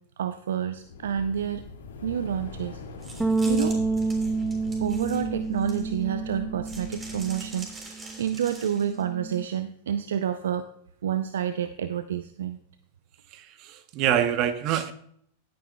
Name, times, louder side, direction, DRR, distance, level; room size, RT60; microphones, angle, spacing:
voice 1, 0.2-1.6 2.0-2.8 3.4-3.9 4.8-10.7 11.0-12.6, right 9 dB, 75° right, 11 dB, 0.5 m, -29 dB
sound 1, 0.8-7.7, left 3 dB, 80° left, 2.2 m, -42 dB
sound 2, 3.0-6.1 6.6-9.0, right 2 dB, 20° right, 3.4 m, -44 dB
Bass guitar, 3.2-9.5, right 3 dB, 5° right, 0.6 m, -29 dB
voice 2, 13.3-14.9, right 10 dB, 45° right, 11 dB, 0.9 m, -26 dB
15.5 x 9.4 x 2.3 m, 0.65 s
hypercardioid pair, 100°, 0 cm